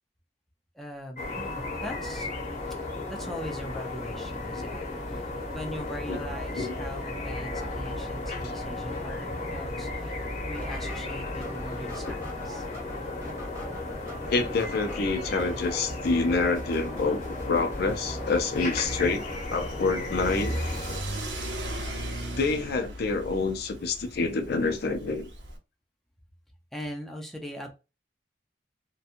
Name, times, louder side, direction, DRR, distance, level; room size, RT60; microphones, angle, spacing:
voice 1, 0.7-2.4 3.1-4.8 5.1-12.7 26.7-27.7, equal, ahead, 0.4 m, -41 dB
sound 1, 1.2-21.0, left 2 dB, 45° left, 0.8 m, -35 dB
sound 2, 10.5-19.2, equal, 20° right, 1.1 m, -41 dB
voice 2, 14.3-20.6 22.4-25.3, left 3 dB, 60° left, 0.5 m, -27 dB
Car / Accelerating revving vroom, 18.8-25.6, right 1 dB, 90° right, 0.8 m, -36 dB
2.8 x 2.2 x 2.5 m
head